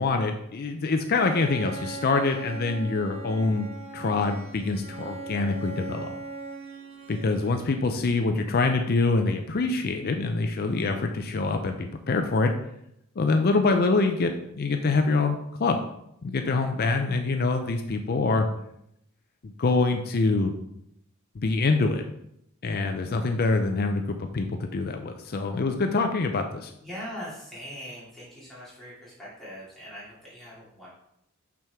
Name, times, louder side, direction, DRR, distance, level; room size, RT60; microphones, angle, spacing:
voice 1, 0.0-3.7 3.9-6.1 7.1-12.5 13.2-15.8 16.2-18.5 19.4-20.5 21.4-22.0 22.6-26.7, left 3 dB, 45° left, 5 dB, 0.5 m, -25 dB
Bowed string instrument, 1.1-7.8, right 3 dB, 30° right, 0.7 m, -39 dB
voice 2, 26.8-30.9, equal, ahead, -10 dB, 2.6 m, -41 dB
6.0 x 5.8 x 3.5 m, 0.77 s
head